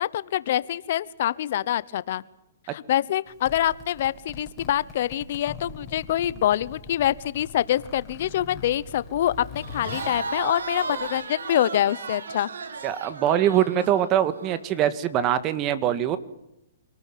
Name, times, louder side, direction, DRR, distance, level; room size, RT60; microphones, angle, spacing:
voice 1, 0.0-2.2 2.7-12.5, left 12 dB, 55° left, 19 dB, 0.9 m, -25 dB
Zipper (clothing), 3.3-11.2, left 4 dB, 20° left, 5.7 m, -42 dB
Crowd, 9.6-14.6, right 4 dB, 85° right, 2.9 m, -35 dB
voice 2, 12.8-16.2, right 10 dB, 30° right, 13 dB, 1.8 m, -23 dB
26.5 x 19.0 x 9.3 m, 0.83 s
hypercardioid pair, 145°, 0 cm